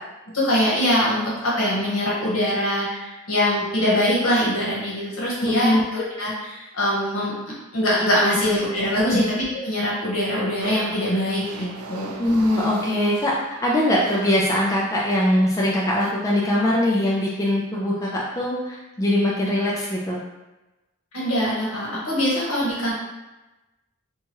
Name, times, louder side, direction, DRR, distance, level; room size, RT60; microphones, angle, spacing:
voice 1, 0.3-9.2 9.6-12.1 21.1-22.9, equal, 70° left, -6 dB, 1.1 m, -23 dB
voice 2, 5.4-5.8 9.0-9.2 12.2-13.3 13.6-20.2, left 1 dB, 15° left, -5 dB, 0.3 m, -21 dB
sound 1, 10.6-15.1 15.7-16.1, right 3 dB, 70° right, 0.3 m, -39 dB
2.9 x 2.3 x 2.9 m, 1.0 s
head